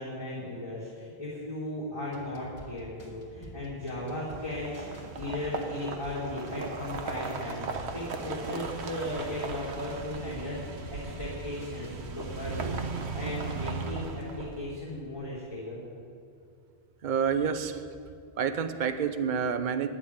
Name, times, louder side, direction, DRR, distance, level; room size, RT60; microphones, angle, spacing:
voice 1, 0.0-4.8 5.1-7.6 7.9-15.8, left 1 dB, 30° left, -9 dB, 3.4 m, -36 dB
sound 1, 2.1-12.4, equal, 45° left, 2.4 m, -47 dB
sound 2, 4.0-14.8, right 4 dB, 80° right, 1.3 m, -37 dB
voice 2, 17.0-17.8 18.4-19.9, right 7 dB, 50° right, 9 dB, 0.8 m, -28 dB
11.5 x 7.7 x 10.0 m, 2.4 s
omnidirectional pair, 1.1 m